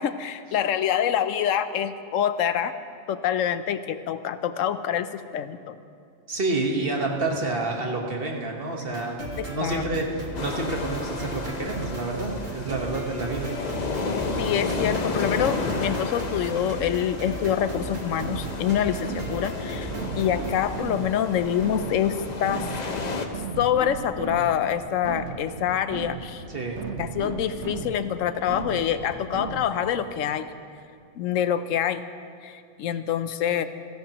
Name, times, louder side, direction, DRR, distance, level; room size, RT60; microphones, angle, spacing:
voice 1, 0.0-2.7 3.1-5.1 5.3-5.8 9.4-9.8 14.4-22.7 23.6-26.4 27.0-30.5 31.2-32.0 32.4-33.7, left 9 dB, 80° left, 12 dB, 1.0 m, -26 dB
voice 2, 6.3-13.5 26.5-26.8, right 2 dB, 50° right, 1 dB, 1.6 m, -29 dB
sound 1, 8.9-20.6, right 1 dB, 85° right, 2.1 m, -36 dB
sound 2, 10.3-23.3, left 3 dB, 40° left, 0.8 m, -32 dB
sound 3, 16.5-30.0, right 5 dB, 65° right, 1.1 m, -37 dB
28.0 x 11.0 x 3.0 m, 2.4 s
omnidirectional pair, 1.3 m